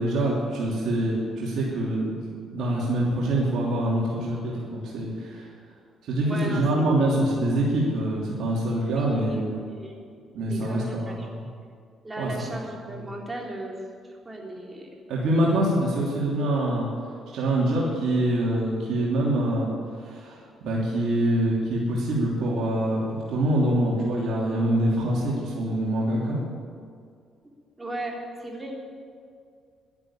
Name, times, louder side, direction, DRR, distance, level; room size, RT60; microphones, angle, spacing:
voice 1, 0.0-2.1 2.5-5.5 6.0-9.6 10.3-11.4 12.2-12.5 12.9-13.0 15.1-16.9 17.3-26.4, right 1 dB, 75° right, -5 dB, 3.0 m, -25 dB
voice 2, 6.2-7.1 8.9-9.9 10.5-11.3 12.0-13.8 14.3-14.9 27.8-28.8, right 1 dB, 20° right, -1 dB, 3.5 m, -36 dB
12.0 x 10.5 x 8.7 m, 2.2 s
cardioid pair, 90°, 0 cm